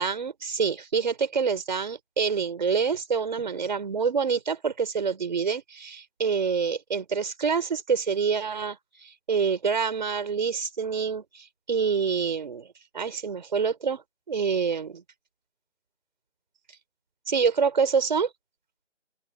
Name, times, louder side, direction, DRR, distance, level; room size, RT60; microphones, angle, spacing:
voice 1, 0.0-8.8 9.0-12.7 12.9-14.0 14.3-15.0 17.3-18.3, right 6 dB, 40° right, 4.7 m, -26 dB
open air
figure-of-eight pair, 160°, 36 cm